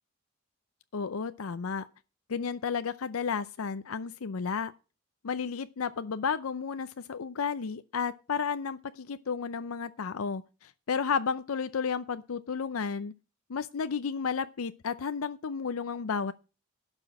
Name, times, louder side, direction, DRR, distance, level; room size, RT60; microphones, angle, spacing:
voice 1, 0.9-1.9 2.3-4.7 5.2-13.1 13.5-16.3, left 6 dB, 85° left, 0.6 m, -32 dB
11.5 x 6.2 x 7.4 m
head